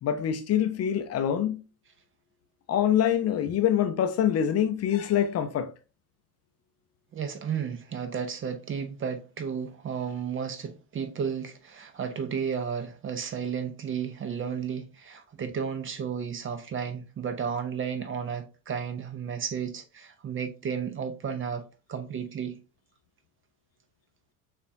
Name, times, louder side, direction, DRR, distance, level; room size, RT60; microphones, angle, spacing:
voice 1, 0.0-1.6 2.7-5.7, left 9 dB, 35° left, 0.6 m, -25 dB
voice 2, 7.1-22.6, right 7 dB, 25° right, 0.7 m, -33 dB
6.7 x 2.5 x 2.7 m
hypercardioid pair, 75°, 45 cm